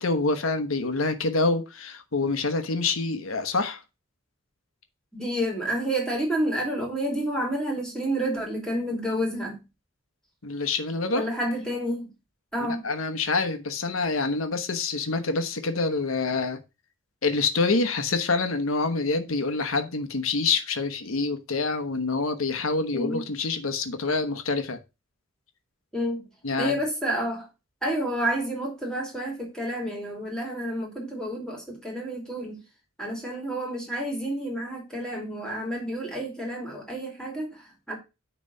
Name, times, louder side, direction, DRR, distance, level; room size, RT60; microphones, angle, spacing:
voice 1, 0.0-3.8 10.4-11.3 12.6-16.6 17.2-24.8 26.4-26.7, left 3 dB, 90° left, 1.1 m, -26 dB
voice 2, 5.1-9.6 11.1-12.1 12.5-12.9 22.9-23.2 25.9-26.2 26.6-27.5 27.8-32.6 33.0-38.0, right 1 dB, 5° left, 2.8 m, -29 dB
9.8 x 3.4 x 5.4 m
head